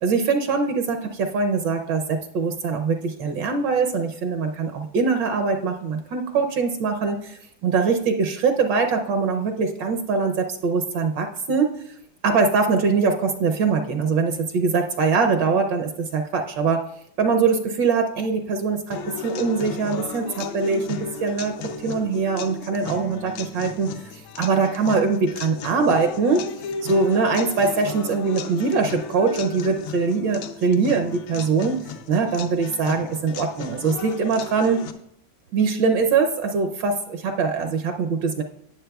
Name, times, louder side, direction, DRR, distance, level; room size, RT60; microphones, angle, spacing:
voice 1, 0.0-11.8 12.2-16.8 17.2-26.5 26.8-31.8 32.1-34.8 35.5-38.4, right 4 dB, 70° right, 4 dB, 1.3 m, -22 dB
sound 1, 18.9-34.9, left 5 dB, 80° left, 1.4 m, -35 dB
17.5 x 7.1 x 2.3 m, 0.72 s
omnidirectional pair, 2.2 m